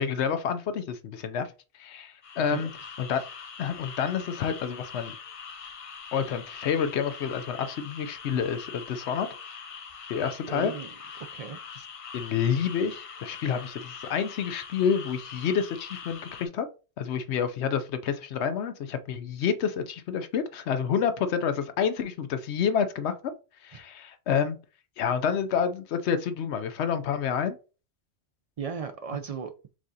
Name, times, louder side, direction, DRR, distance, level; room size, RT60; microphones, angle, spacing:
voice 1, 0.0-1.5 1.8-2.7 3.0-3.2 3.6-5.1 6.1-9.3 10.1-10.7 12.1-16.7 17.0-23.1 23.6-24.6 25.0-27.6, left 7 dB, 80° left, 0.9 m, -28 dB
sound 1, 2.2-16.5, left 6 dB, 45° left, 0.4 m, -43 dB
voice 2, 10.5-11.6 28.6-29.5, right 6 dB, 55° right, 0.4 m, -36 dB
4.8 x 3.6 x 2.7 m
omnidirectional pair, 1.1 m